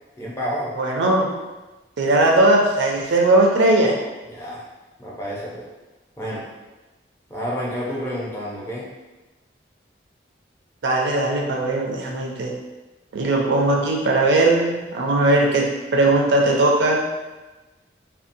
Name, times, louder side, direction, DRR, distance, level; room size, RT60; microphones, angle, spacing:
voice 1, 0.2-0.8 4.3-4.7 5.0-5.7 6.2-6.5 7.3-8.9, equal, 15° left, -5 dB, 0.4 m, -29 dB
voice 2, 0.8-1.3 2.0-4.0 10.8-12.5 13.1-17.0, right 2 dB, 75° right, -1 dB, 0.4 m, -19 dB
2.7 x 2.0 x 2.5 m, 1.1 s
head